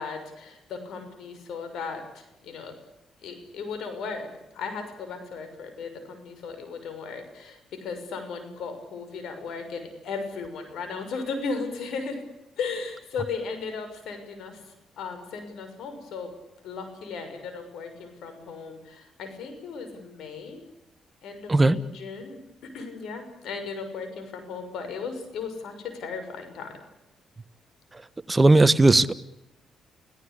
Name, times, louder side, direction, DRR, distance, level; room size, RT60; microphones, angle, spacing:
voice 1, 0.0-2.7 3.2-4.3 4.5-12.2 12.6-14.6 15.0-16.3 16.6-20.6 21.2-26.8, left 4 dB, 75° left, 8 dB, 6.3 m, -36 dB
voice 2, 28.3-29.1, right 2 dB, 20° right, 12 dB, 1.3 m, -17 dB
30.0 x 17.5 x 8.5 m, 0.89 s
cardioid pair, 90°, 0 cm